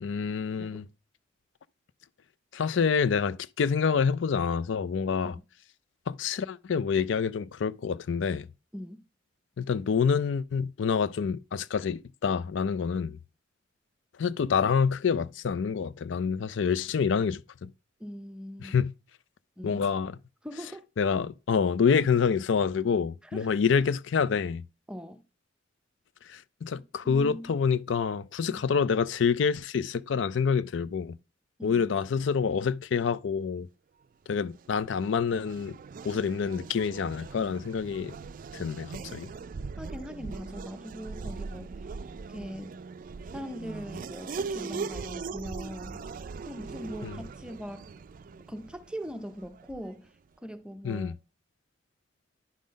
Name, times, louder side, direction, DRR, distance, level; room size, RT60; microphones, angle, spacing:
voice 1, 0.0-0.8 2.5-5.4 6.1-8.5 9.6-13.2 14.2-17.7 18.6-18.9 19.6-20.1 21.0-24.7 26.3-31.2 31.6-33.7 34.3-35.8 36.0-38.2 38.5-39.3 47.0-47.2 50.8-51.1, left 6 dB, 75° left, 0.4 m, -27 dB
voice 2, 8.7-9.0 18.0-18.8 19.6-19.9 20.4-20.8 23.2-23.5 24.9-25.2 27.0-27.6 28.5-28.6 31.6-31.8 39.7-41.8 42.3-42.8 43.3-46.0 46.5-47.9 48.5-50.1 50.4-51.1, equal, 5° right, 0.6 m, -41 dB
Race car auto racing / Accelerating revving vroom, 34.4-50.1, right 4 dB, 45° right, 0.3 m, -40 dB
10.0 x 3.8 x 5.2 m
head